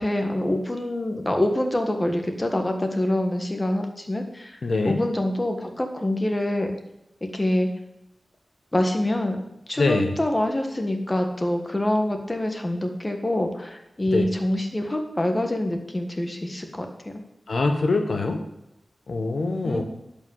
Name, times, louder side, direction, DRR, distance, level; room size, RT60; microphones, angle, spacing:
voice 1, 0.0-6.8 7.3-7.7 8.7-9.4 9.7-17.2 19.6-19.8, left 1 dB, 25° left, 4 dB, 1.7 m, -25 dB
voice 2, 4.6-5.0 9.8-10.1 14.1-14.2 17.5-18.4 19.1-19.8, left 3 dB, 70° left, 5 dB, 1.2 m, -23 dB
11.0 x 5.3 x 7.3 m, 0.87 s
wide cardioid pair, 75°, 0 cm